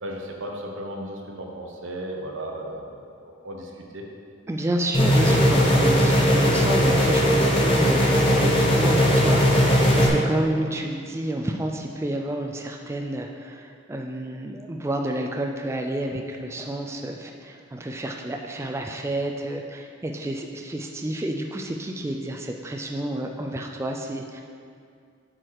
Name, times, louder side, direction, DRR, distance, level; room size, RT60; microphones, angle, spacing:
voice 1, 0.0-4.0, right 1 dB, 90° right, 0 dB, 1.0 m, -35 dB
voice 2, 4.5-24.4, right 1 dB, 15° right, 2 dB, 0.3 m, -30 dB
sound 1, 4.9-10.1, equal, 30° left, 1.0 m, -19 dB
7.6 x 4.7 x 4.7 m, 2.3 s
head